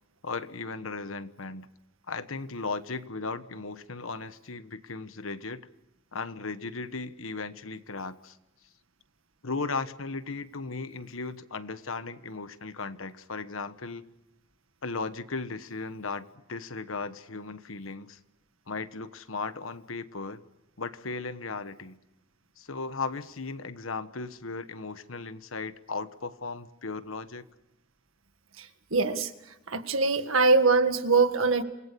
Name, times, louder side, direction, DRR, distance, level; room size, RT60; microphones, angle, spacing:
voice 1, 0.2-1.7 2.1-5.7 6.1-8.4 9.4-14.0 14.8-18.2 18.7-20.4 20.8-22.0 22.6-27.5 31.6-31.7, left 4 dB, 85° left, 12 dB, 1.3 m, -36 dB
voice 2, 28.6-29.3 29.7-31.6, right 4 dB, 85° right, 9 dB, 1.8 m, -23 dB
27.5 x 20.5 x 7.0 m, 0.94 s
head